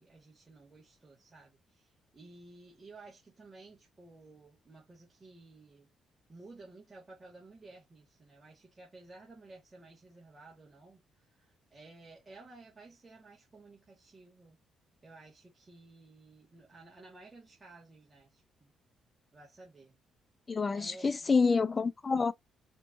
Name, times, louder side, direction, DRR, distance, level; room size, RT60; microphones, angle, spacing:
voice 1, 0.0-5.9 6.3-14.6 15.0-18.7 19.3-20.0 20.7-21.5, right 3 dB, 25° right, 1.9 m, -55 dB
voice 2, 20.5-22.3, left 4 dB, 30° left, 0.5 m, -27 dB
4.5 x 2.5 x 2.6 m
cardioid pair, 90°, 0 cm